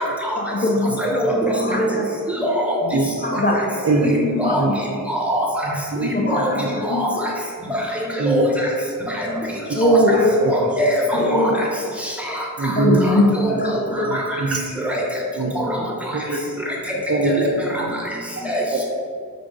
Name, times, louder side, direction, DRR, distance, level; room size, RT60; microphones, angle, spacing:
voice 1, 0.4-0.9 1.6-2.1 3.2-3.6 4.4-5.0 6.1-7.3 9.7-10.3 11.2-11.6 12.8-14.1, left 1 dB, 30° left, -1 dB, 0.5 m, -21 dB
voice 2, 1.0-1.9 2.4-2.8 4.0-4.6 5.1-5.5 6.0-6.5 6.9-7.1 7.7-7.8 8.3-8.5 9.2-9.3 9.8-10.0 10.5-11.5 13.0-13.1 13.4-13.8 14.1-14.2 14.8-15.1 15.6-15.8 17.4-17.5 18.4-18.6, equal, 5° right, -2 dB, 1.0 m, -22 dB
voice 3, 3.8-4.2 4.5-4.7 5.6-6.7 8.2-8.5 9.7-9.8 10.4-10.5 11.1-11.3 12.6-13.0 13.5-13.6 14.0-14.6 15.4-15.5 16.1-16.4 17.1-17.9 18.7-18.9, right 3 dB, 45° right, 0 dB, 0.5 m, -23 dB
5.0 x 2.4 x 3.8 m, 2.3 s
cardioid pair, 40°, 35 cm